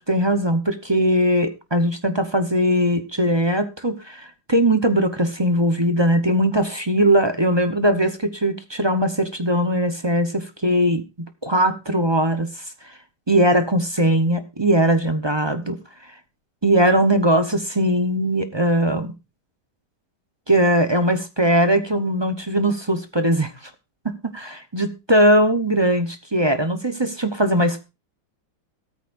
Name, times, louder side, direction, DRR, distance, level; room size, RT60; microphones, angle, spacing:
voice 1, 0.0-11.0 11.4-12.5 13.3-15.8 16.6-19.1 20.5-23.5 24.3-27.8, right 1 dB, 20° right, 8 dB, 0.8 m, -20 dB
16.5 x 13.5 x 2.6 m, 0.28 s
omnidirectional pair, 1.8 m